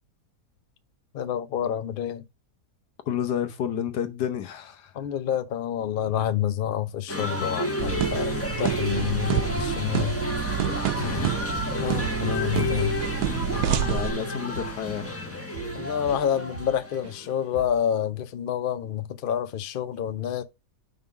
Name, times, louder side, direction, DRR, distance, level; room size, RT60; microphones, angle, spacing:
voice 1, 1.1-2.2 4.9-10.2 11.8-13.0 15.7-20.4, left 9 dB, 55° left, 0.6 m, -28 dB
voice 2, 3.1-5.1 11.0-11.5 11.8-12.2 13.6-15.4, left 9 dB, 90° left, 1.5 m, -31 dB
sound 1, 7.1-17.4, left 1 dB, 10° left, 1.0 m, -31 dB
sound 2, 7.8-14.1, right 11 dB, 90° right, 1.3 m, -28 dB
Drum kit / Drum, 11.0-11.3 11.5-11.8 12.0-15.2 15.5-16.8 17.0-17.2 17.5-17.9, right 5 dB, 65° right, 1.6 m, -42 dB
5.3 x 3.8 x 4.8 m
omnidirectional pair, 1.7 m